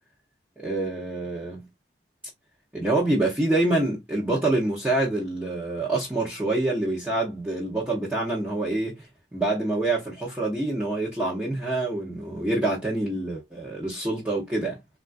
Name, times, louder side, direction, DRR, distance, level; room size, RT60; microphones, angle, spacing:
voice 1, 0.6-1.6 2.7-9.0 9.3-14.8, right 2 dB, 10° right, 0.7 m, -26 dB
3.6 x 2.4 x 2.4 m
head